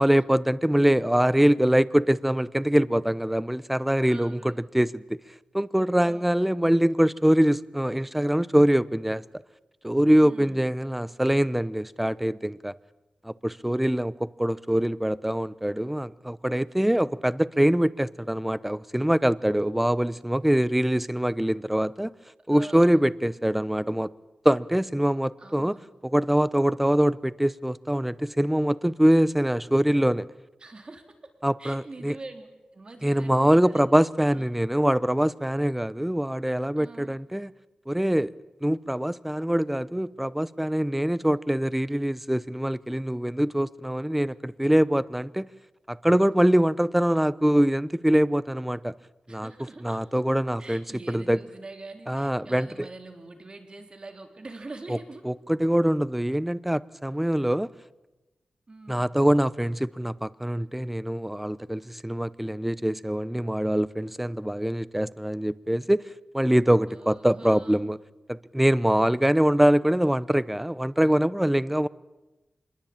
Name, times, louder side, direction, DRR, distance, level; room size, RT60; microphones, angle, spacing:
voice 1, 0.0-5.2 5.5-9.2 9.8-12.7 13.2-22.1 22.5-24.1 24.4-25.8 26.0-30.3 31.4-32.1 33.0-37.5 37.9-38.3 38.6-45.5 45.9-48.9 49.3-49.5 49.8-51.4 52.1-52.7 54.9-55.0 55.2-57.7 58.9-68.0 68.3-71.9, equal, 5° right, 0.8 m, -24 dB
voice 2, 4.0-4.6 6.0-6.6 10.2-10.6 22.5-23.0 25.4-25.9 30.6-31.0 31.6-32.5 32.7-33.8 34.3-34.5 36.8-37.2 49.3-50.0 50.6-55.2 58.7-59.1 66.9-67.9 68.9-69.2, right 2 dB, 40° right, 3.8 m, -44 dB
26.5 x 21.5 x 8.8 m
wide cardioid pair, 80°, 2 cm